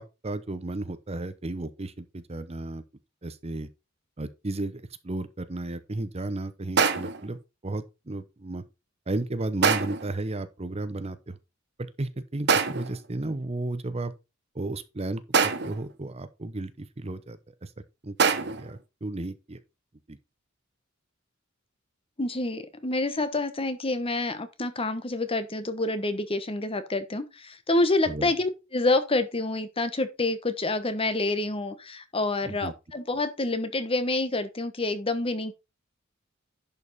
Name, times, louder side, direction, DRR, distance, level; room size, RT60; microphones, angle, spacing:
voice 1, 0.0-2.8 3.2-3.7 4.2-7.4 7.6-8.6 9.1-11.4 12.0-14.1 14.5-17.7 18.0-19.6 20.1-20.2 28.1-28.3 32.4-32.7, right 2 dB, 30° right, 0.8 m, -34 dB
sound 1, 6.8-7.3 9.6-10.1 12.5-13.1 15.3-15.9 18.2-18.7, right 5 dB, 55° right, 1.0 m, -24 dB
voice 2, 22.2-35.5, left 2 dB, 30° left, 1.1 m, -27 dB
11.0 x 5.3 x 4.2 m
head